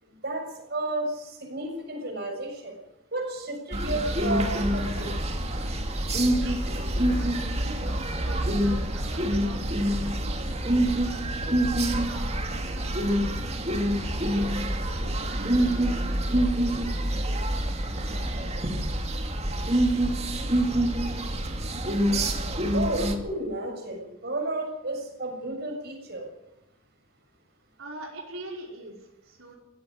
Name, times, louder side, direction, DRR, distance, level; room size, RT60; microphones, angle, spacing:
voice 1, 0.2-2.8 3.1-5.1 22.7-26.3, right 2 dB, 50° right, 2 dB, 7.2 m, -32 dB
sound 1, 3.7-23.1, right 1 dB, 30° right, 2.6 m, -26 dB
voice 2, 6.4-10.3 11.1-15.7 27.8-29.6, right 2 dB, 80° right, -1 dB, 5.2 m, -44 dB
18.5 x 16.5 x 9.6 m, 0.88 s
head